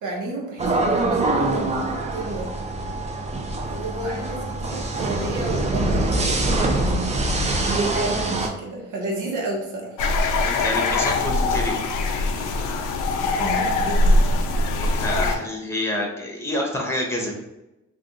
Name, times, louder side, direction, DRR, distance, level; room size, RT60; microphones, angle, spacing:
voice 1, 0.0-2.5 3.6-7.0 7.7-10.0 13.2-14.2, right 2 dB, 80° right, -1 dB, 1.0 m, -32 dB
sound 1, 0.6-8.5, right 2 dB, 20° right, 0.5 m, -24 dB
sound 2, 10.0-15.4, left 2 dB, 85° left, 0.5 m, -22 dB
voice 2, 10.4-11.7 14.8-17.3, left 1 dB, 10° left, 0 dB, 0.9 m, -27 dB
2.5 x 2.4 x 3.7 m, 0.95 s
cardioid pair, 90°, 30 cm